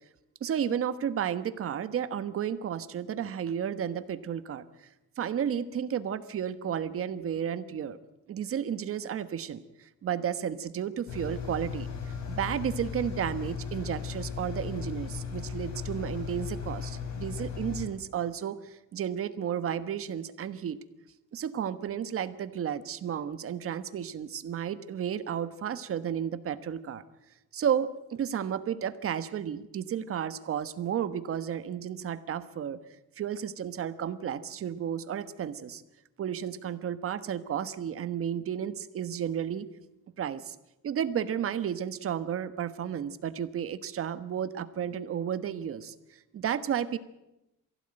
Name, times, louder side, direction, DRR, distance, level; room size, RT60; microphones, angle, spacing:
voice 1, 0.4-4.6 5.2-8.0 8.3-11.9 12.3-20.8 21.3-27.0 27.5-32.8 33.2-35.8 36.2-39.7 40.2-40.5 40.8-47.0, right 9 dB, 45° right, 13 dB, 1.3 m, -32 dB
Engine, 11.1-17.9, left 7 dB, 60° left, 5.6 m, -36 dB
23.5 x 16.0 x 8.9 m, 0.91 s
cardioid pair, 155°, 30 cm